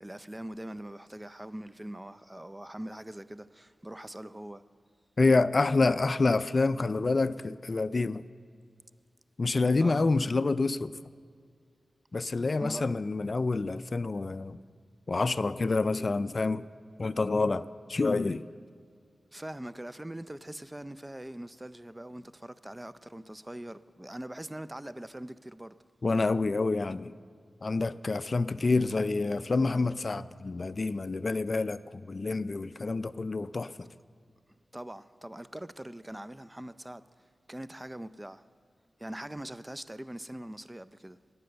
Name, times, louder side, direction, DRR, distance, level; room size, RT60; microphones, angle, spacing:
voice 1, 0.0-4.6 9.8-10.1 12.6-12.8 19.3-25.7 34.5-38.4 39.0-41.2, right 1 dB, 15° right, 0.4 m, -42 dB
voice 2, 5.2-8.3 9.4-10.9 12.1-14.6 15.1-16.7 17.0-18.4 26.0-27.1 27.6-33.9, left 3 dB, 50° left, 0.3 m, -27 dB
13.0 x 9.6 x 6.8 m
cardioid pair, 55°, 0 cm